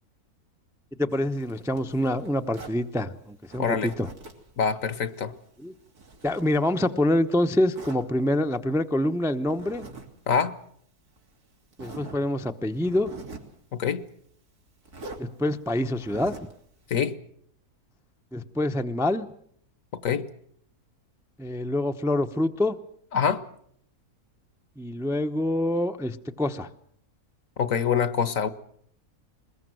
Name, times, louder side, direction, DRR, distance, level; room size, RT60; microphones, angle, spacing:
voice 1, 1.0-4.1 5.6-5.7 6.2-9.8 11.8-13.1 15.2-16.3 18.3-19.3 21.4-22.8 24.8-26.7, left 1 dB, 5° right, 7 dB, 0.6 m, -26 dB
Zipper (clothing), 1.1-2.8 3.5-4.5 4.9-7.1 7.7-8.0 9.5-10.1 10.3-10.5 11.2-11.3 11.7-12.2 12.7-13.5 14.9-15.2 15.9-16.6, right 3 dB, 90° right, 3.5 m, -44 dB
voice 2, 3.6-3.9 4.6-5.3 10.3-10.6 13.7-14.0 16.9-17.2 19.9-20.3 23.1-23.4 27.6-28.5, left 7 dB, 60° left, 14 dB, 1.5 m, -25 dB
22.0 x 21.0 x 7.8 m, 0.66 s
omnidirectional pair, 1.6 m